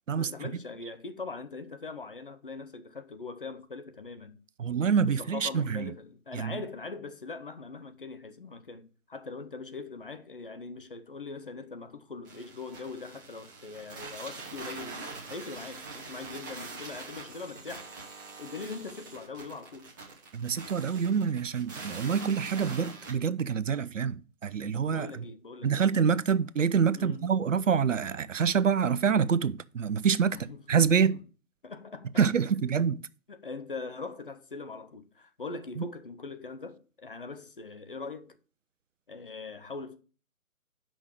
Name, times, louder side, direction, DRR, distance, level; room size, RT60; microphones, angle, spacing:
voice 1, 0.1-4.4 5.0-17.9 18.4-19.9 24.9-25.9 26.9-27.3 30.3-30.8 31.1-31.2 31.6-32.2 33.3-38.4 39.1-40.0, left 4 dB, 40° left, 0.5 m, -41 dB
voice 2, 4.6-5.8 6.3-6.5 20.3-25.3 25.6-30.4 30.7-31.2 32.2-33.0 35.8-35.9, right 6 dB, 60° right, 0.5 m, -26 dB
sound 1, 12.3-23.1, right 3 dB, 15° right, 0.9 m, -44 dB
6.1 x 5.1 x 6.3 m
figure-of-eight pair, 140°, 43 cm